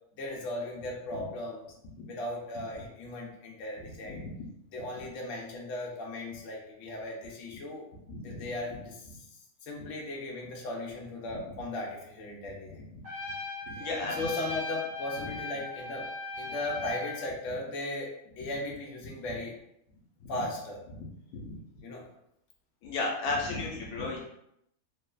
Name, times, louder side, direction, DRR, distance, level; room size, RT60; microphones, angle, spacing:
voice 1, 0.1-1.7 2.1-4.2 4.7-7.8 8.2-9.0 9.6-12.8 13.7-16.1 16.4-18.1 18.4-19.6 20.3-20.8 21.8-22.0, left 2 dB, 65° left, -2 dB, 0.9 m, -37 dB
voice 2, 8.1-8.5 13.7-14.3 20.2-20.3 21.3-21.6 22.8-24.2, left 3 dB, 85° left, -2 dB, 1.1 m, -34 dB
Trumpet, 13.0-17.3, left 3 dB, 65° right, 1.1 m, -38 dB
3.0 x 2.0 x 2.3 m, 0.77 s
omnidirectional pair, 1.6 m